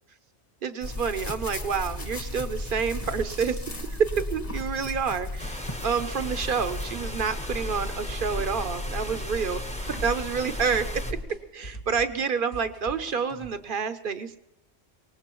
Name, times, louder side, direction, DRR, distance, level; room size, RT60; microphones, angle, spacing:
voice 1, 0.6-3.6 4.0-9.6 10.0-11.0 11.5-14.4, right 6 dB, 55° right, 10 dB, 0.9 m, -28 dB
sound 1, 0.8-11.2, left 1 dB, 30° left, 1.2 m, -35 dB
sound 2, 5.4-11.1, left 1 dB, 5° left, 0.8 m, -39 dB
sound 3, 6.4-6.9 7.2-8.7 9.0-9.6 9.8-13.5, equal, 75° left, 2.3 m, -42 dB
23.5 x 18.5 x 3.0 m, 0.82 s
omnidirectional pair, 1.2 m